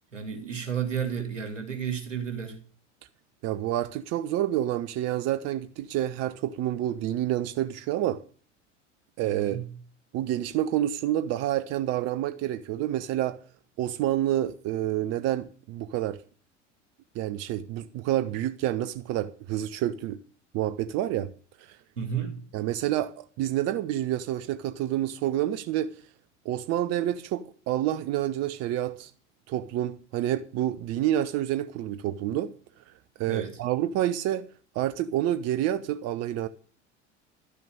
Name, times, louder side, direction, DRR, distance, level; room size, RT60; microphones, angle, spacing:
voice 1, 0.1-2.6 9.2-9.7 22.0-22.4 33.2-33.6, right 8 dB, 80° right, 2.6 m, -32 dB
voice 2, 3.4-8.2 9.2-9.6 10.1-13.4 13.8-16.2 17.1-20.2 20.5-21.3 21.6-21.8 22.5-25.9 26.4-29.1 29.5-32.5 33.2-34.5 34.7-36.5, right 12 dB, 45° right, 0.8 m, -28 dB
12.0 x 6.8 x 8.9 m
figure-of-eight pair, 75°, 37 cm